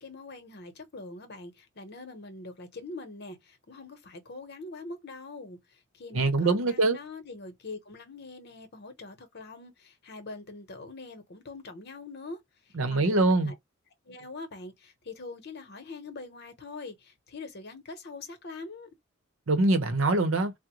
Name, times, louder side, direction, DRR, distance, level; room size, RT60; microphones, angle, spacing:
voice 1, 0.0-5.6 6.0-12.4 12.9-13.5 14.1-18.9, left 3 dB, 55° left, 0.9 m, -43 dB
voice 2, 6.1-7.0 12.7-13.5 19.5-20.5, right 2 dB, 80° right, 0.8 m, -24 dB
3.7 x 2.1 x 3.0 m
head